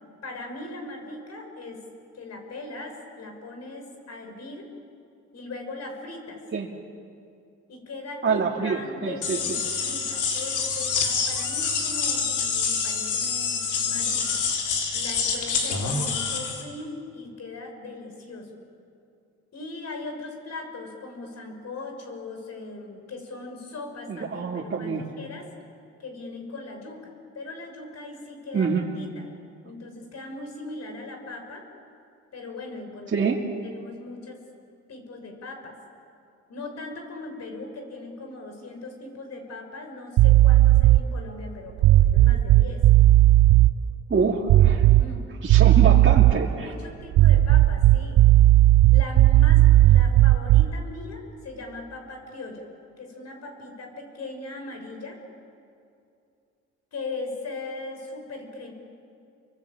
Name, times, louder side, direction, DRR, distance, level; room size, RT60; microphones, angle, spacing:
voice 1, 0.2-1.8 2.1-4.7 5.3-6.4 7.7-14.4 14.9-18.6 19.5-25.5 26.0-29.2 29.6-31.6 32.3-33.3 33.6-34.4 34.9-35.7 36.5-42.8 45.0-45.3 46.5-48.2 48.9-52.7 53.0-55.2 56.9-58.7, left 2 dB, 60° left, 3 dB, 6.2 m, -39 dB
voice 2, 8.2-9.4 24.1-25.0 28.5-28.8 33.1-33.4 44.1-44.9 45.4-46.7, right 5 dB, 40° right, -3 dB, 2.6 m, -25 dB
sound 1, 9.2-16.6, left 5 dB, 80° left, 4.0 m, -27 dB
sound 2, 40.2-41.1 41.8-43.7 44.5-45.2 45.5-46.5 47.1-50.8, right 14 dB, 75° right, 0.7 m, -16 dB
28.5 x 23.5 x 8.8 m, 2.5 s
cardioid pair, 90°, 30 cm